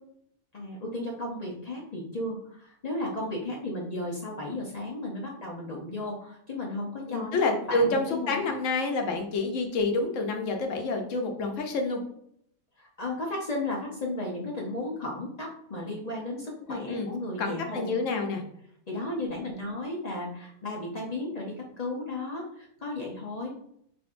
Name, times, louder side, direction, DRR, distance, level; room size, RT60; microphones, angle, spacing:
voice 1, 0.5-8.6 12.8-18.0 18.9-23.5, left 2 dB, 45° left, -2 dB, 0.5 m, -34 dB
voice 2, 7.1-12.0 16.7-17.1 17.4-18.4, left 3 dB, 70° left, 4 dB, 1.0 m, -28 dB
4.9 x 2.5 x 2.5 m, 0.69 s
omnidirectional pair, 1.5 m